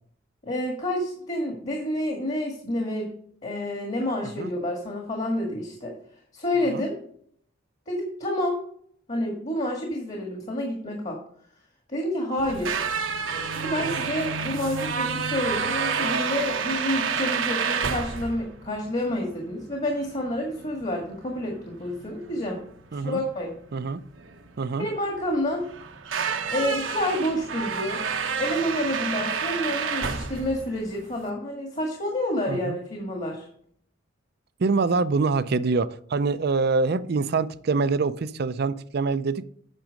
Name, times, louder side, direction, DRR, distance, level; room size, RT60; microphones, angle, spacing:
voice 1, 0.4-3.1 3.4-5.9 6.3-7.0 7.9-8.6 9.1-11.2 11.9-12.8 13.5-22.6 22.9-23.5 24.8-25.7 26.5-28.0 28.4-33.5, left 1 dB, 40° left, 1 dB, 1.7 m, -29 dB
sound 1, 12.4-31.3, right 5 dB, 85° right, 1.0 m, -30 dB
voice 2, 34.6-39.5, right 4 dB, 55° right, 14 dB, 0.5 m, -25 dB
8.9 x 6.1 x 5.1 m, 0.62 s
head